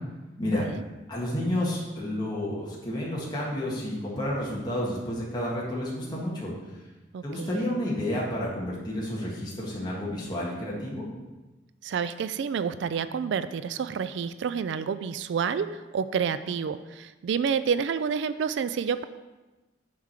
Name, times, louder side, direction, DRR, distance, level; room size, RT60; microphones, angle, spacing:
voice 1, 0.4-0.8 7.1-7.7 11.8-19.0, right 6 dB, 70° right, 13 dB, 0.3 m, -29 dB
voice 2, 1.1-6.5 7.2-11.0, left 1 dB, 25° left, -5 dB, 1.6 m, -30 dB
7.4 x 4.7 x 5.8 m, 1.2 s
head